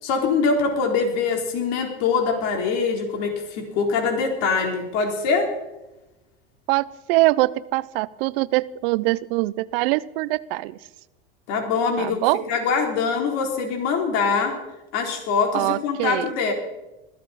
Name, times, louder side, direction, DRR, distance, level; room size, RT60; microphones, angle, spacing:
voice 1, 0.0-5.5 11.5-14.6 14.9-16.5, left 5 dB, 65° left, 3 dB, 3.7 m, -23 dB
voice 2, 6.7-10.8 12.0-12.4 15.5-16.3, right 20 dB, 70° right, 18 dB, 0.8 m, -23 dB
21.0 x 14.5 x 4.2 m, 1.0 s
supercardioid pair, 100°, 30 cm